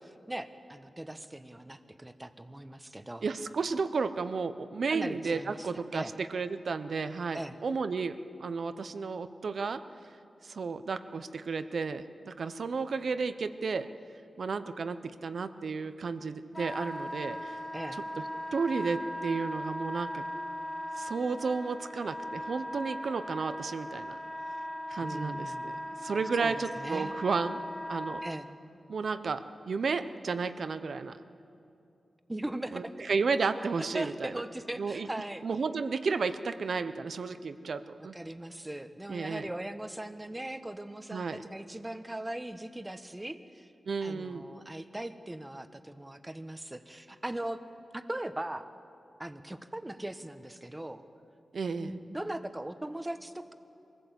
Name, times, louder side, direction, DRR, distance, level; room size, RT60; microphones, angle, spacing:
voice 1, 0.0-3.2 4.9-6.1 7.3-7.6 17.7-18.0 25.0-25.7 26.4-27.1 28.2-28.5 32.3-32.9 33.8-35.4 38.1-43.7 44.0-47.6 47.9-48.7 49.2-51.1 51.8-53.5, right 1 dB, 20° right, 9 dB, 1.2 m, -39 dB
voice 2, 3.2-9.8 10.4-13.9 14.4-17.6 17.9-18.0 18.5-20.2 21.0-24.2 24.9-25.7 26.0-27.6 27.9-28.2 28.9-31.2 32.7-34.3 34.8-35.1 35.4-38.2 39.1-39.5 41.1-41.4 43.9-44.4 51.5-51.9, right 4 dB, 75° right, 11 dB, 0.9 m, -33 dB
Wind instrument woodwind instrument, 16.5-28.3, equal, 15° left, 1.3 m, -38 dB
23.0 x 16.0 x 8.2 m, 2.7 s
cardioid pair, 60°, 0 cm